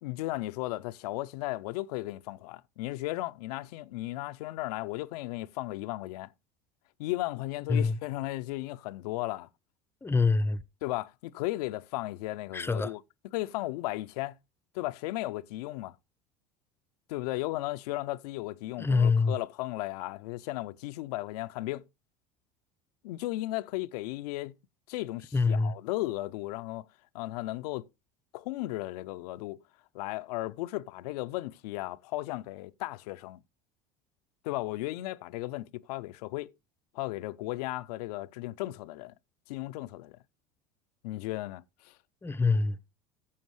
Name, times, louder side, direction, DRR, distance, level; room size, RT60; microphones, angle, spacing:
voice 1, 0.0-6.3 7.0-9.5 10.8-14.4 14.7-16.0 17.1-21.8 23.0-24.5 24.9-26.9 27.1-27.9 28.3-29.6 29.9-33.4 34.4-36.5 36.9-39.1 39.5-40.2 41.0-42.0, left 18 dB, 70° left, 0.5 m, -35 dB
voice 2, 10.0-10.6 12.5-12.9 18.8-19.3 25.3-25.7 42.2-42.8, left 4 dB, 10° left, 0.6 m, -25 dB
14.0 x 7.1 x 3.1 m
hypercardioid pair, 80°, 20 cm